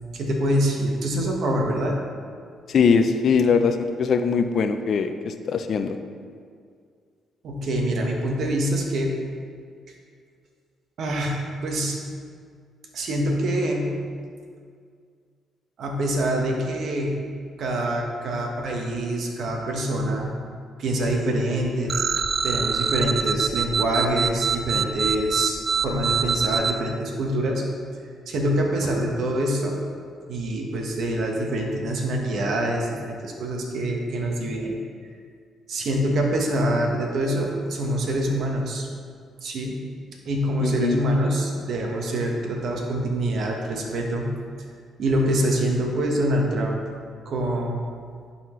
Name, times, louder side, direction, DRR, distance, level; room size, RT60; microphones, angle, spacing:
voice 1, 0.1-2.0 7.4-9.1 11.0-12.0 12.9-14.0 15.8-17.2 17.6-20.4 20.8-21.9 22.4-27.6 28.3-29.8 30.3-34.7 35.7-38.9 39.4-39.8 40.2-44.3 45.0-46.9 47.2-47.8, right 1 dB, 65° right, 0 dB, 1.2 m, -25 dB
voice 2, 2.7-6.0 40.6-41.1, left 5 dB, 60° left, 8 dB, 0.5 m, -21 dB
sound 1, 21.9-26.7, right 6 dB, 45° right, 0.3 m, -24 dB
10.5 x 4.3 x 3.1 m, 2.1 s
cardioid pair, 90°, 0 cm